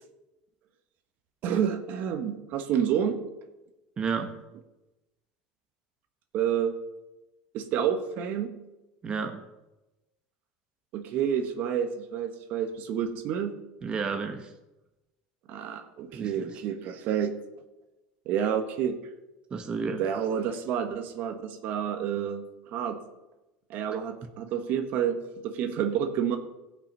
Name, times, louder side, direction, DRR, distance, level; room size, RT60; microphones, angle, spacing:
voice 1, 1.4-3.2 6.3-6.7 7.5-8.5 10.9-13.5 15.5-17.3 18.2-19.0 20.0-23.0 23.7-26.4, right 8 dB, 60° right, 7 dB, 1.3 m, -29 dB
voice 2, 4.0-4.4 9.0-9.4 13.8-14.5 16.1-16.3 19.5-20.0, right 5 dB, 30° right, 6 dB, 1.0 m, -31 dB
16.0 x 5.8 x 5.4 m, 1.0 s
supercardioid pair, 110°, 3 cm